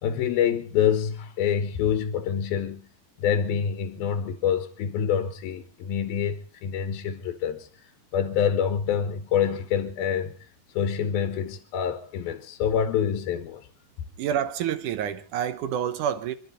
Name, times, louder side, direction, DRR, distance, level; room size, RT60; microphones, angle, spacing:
voice 1, 0.0-2.9 3.2-10.3 10.7-13.7, left 8 dB, 75° left, 2.9 m, -26 dB
voice 2, 14.2-16.3, right 9 dB, 70° right, 2.2 m, -28 dB
27.5 x 12.0 x 4.1 m
omnidirectional pair, 4.4 m